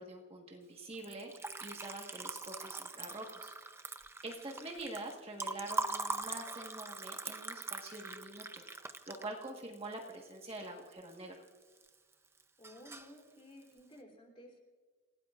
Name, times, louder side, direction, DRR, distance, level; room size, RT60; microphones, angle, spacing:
voice 1, 0.0-3.5 4.2-8.6 9.1-11.4, right 2 dB, 25° right, 0 dB, 1.5 m, -45 dB
Liquid, 0.9-11.1 11.5-12.1 12.4-13.2, right 3 dB, 10° right, 0.5 m, -42 dB
voice 2, 12.6-14.6, left 1 dB, 25° left, 1 dB, 3.3 m, -55 dB
29.5 x 17.0 x 2.5 m, 1.5 s
head